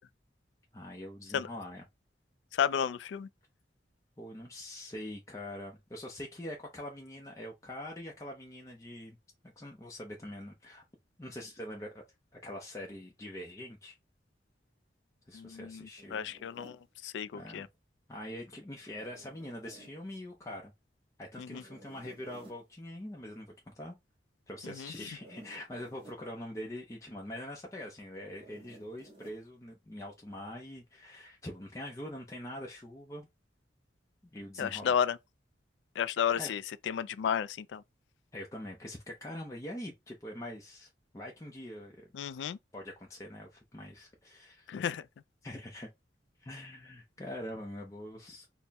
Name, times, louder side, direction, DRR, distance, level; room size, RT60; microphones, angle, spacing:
voice 1, 0.7-1.8 4.2-9.2 9.6-10.8 11.2-12.0 12.4-14.0 15.3-16.3 17.3-17.7 18.1-20.7 21.2-24.0 24.5-33.3 34.3-35.0 36.3-36.5 38.3-42.1 42.7-44.7 45.4-45.9 46.4-48.5, left 1 dB, 15° left, 0.6 m, -44 dB
voice 2, 2.5-3.3 15.3-16.8 17.0-17.7 21.4-21.6 24.8-24.9 34.6-35.2 36.0-36.6 36.9-37.8 42.1-42.6 44.7-45.0, left 8 dB, 80° left, 0.3 m, -32 dB
Zipper (clothing), 16.0-16.8 18.8-20.0 21.6-22.6 25.0-26.2 28.3-29.4, right 1 dB, 30° right, 1.3 m, -55 dB
4.2 x 2.1 x 3.4 m
head